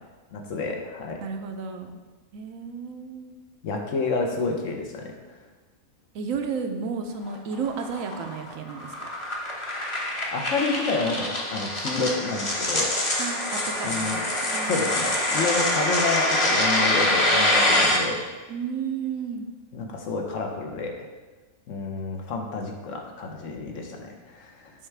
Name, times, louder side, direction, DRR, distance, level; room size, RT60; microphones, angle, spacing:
voice 1, 0.3-1.2 3.6-5.1 10.3-12.9 13.8-14.2 14.6-18.2 19.7-21.1 21.7-24.7, left 3 dB, 70° left, 2 dB, 1.2 m, -29 dB
voice 2, 1.2-1.9 2.3-3.3 6.1-9.1 13.2-14.2 14.4-14.8 18.5-19.5, right 6 dB, 80° right, 6 dB, 1.0 m, -32 dB
sound 1, 7.3-18.0, left 1 dB, 25° left, 0.8 m, -25 dB
7.3 x 4.6 x 3.3 m, 1.3 s
omnidirectional pair, 1.4 m